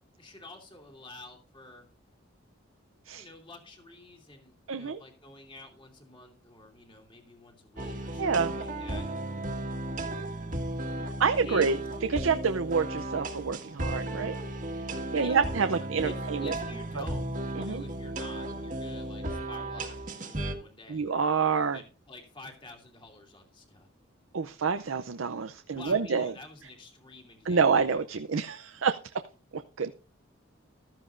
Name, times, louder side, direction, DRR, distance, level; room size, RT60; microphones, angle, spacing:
voice 1, 0.2-1.9 3.1-9.1 11.4-11.7 15.1-21.1 21.7-23.9 25.7-27.6 28.1-28.2, left 2 dB, 25° left, 3 dB, 2.7 m, -49 dB
voice 2, 4.7-5.0 8.2-8.5 11.2-11.8 12.1-14.3 15.1-16.5 17.0-17.1 17.6-17.8 20.9-21.8 24.3-26.3 27.5-29.2 29.5-29.9, right 5 dB, 85° right, 9 dB, 0.6 m, -27 dB
sound 1, 7.8-20.5, right 1 dB, 40° right, 1.8 m, -35 dB
15.0 x 13.5 x 2.6 m, 0.33 s
head